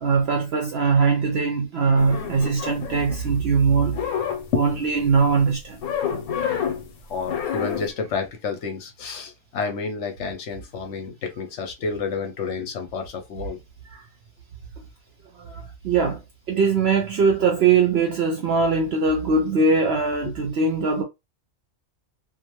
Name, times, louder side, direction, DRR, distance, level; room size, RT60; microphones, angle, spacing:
voice 1, 0.0-4.0 4.5-5.8 13.9-14.0 15.3-16.2 16.5-21.0, right 4 dB, 65° right, 0.6 m, -21 dB
sound 1, 2.0-3.5 3.8-5.1 5.8-6.9 7.2-7.9, left 8 dB, 90° left, 1.1 m, -29 dB
voice 2, 7.1-13.6 20.2-20.3, left 5 dB, 65° left, 0.8 m, -29 dB
2.5 x 2.2 x 2.9 m
omnidirectional pair, 1.5 m